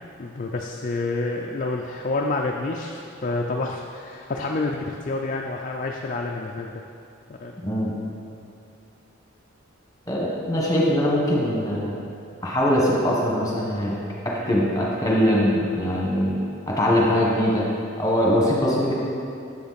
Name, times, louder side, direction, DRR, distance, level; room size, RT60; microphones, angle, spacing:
voice 1, 0.0-6.8 7.3-7.5 14.5-14.6, left 2 dB, 40° left, 0 dB, 0.4 m, -28 dB
voice 2, 7.6-7.9 10.1-12.0 12.4-13.9 14.2-16.3 16.7-17.6 18.0-18.9, equal, 15° left, -4 dB, 1.3 m, -22 dB
7.6 x 7.1 x 4.1 m, 2.6 s
head